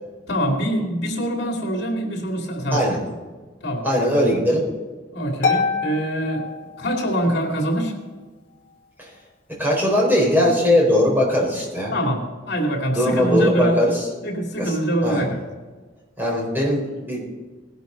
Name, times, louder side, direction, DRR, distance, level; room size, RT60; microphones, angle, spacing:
voice 1, 0.3-2.8 3.6-3.9 5.1-6.4 6.8-7.9 11.9-13.9 14.2-15.4, equal, 60° left, 1 dB, 2.9 m, -24 dB
voice 2, 3.8-4.7 9.6-11.9 12.9-14.0 14.6-14.7 15.0-15.2 16.2-17.2, equal, 10° right, -3 dB, 4.3 m, -19 dB
Harp, 5.4-7.3, left 5 dB, 45° left, 2.4 m, -25 dB
19.0 x 12.0 x 4.0 m, 1.3 s
head